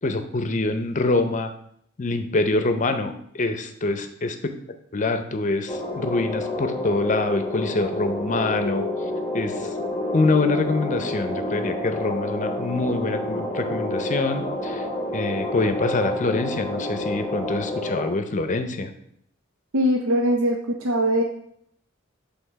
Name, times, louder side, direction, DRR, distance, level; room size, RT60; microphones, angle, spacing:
voice 1, 0.0-1.5 2.0-4.5 4.9-8.9 9.3-9.7 10.1-14.9 15.1-18.9, left 3 dB, 40° left, 8 dB, 0.6 m, -25 dB
sound 1, 5.7-18.1, left 1 dB, 15° left, 0.9 m, -29 dB
voice 2, 19.7-21.2, equal, 85° right, 1 dB, 0.8 m, -21 dB
7.7 x 3.5 x 4.7 m, 0.70 s
head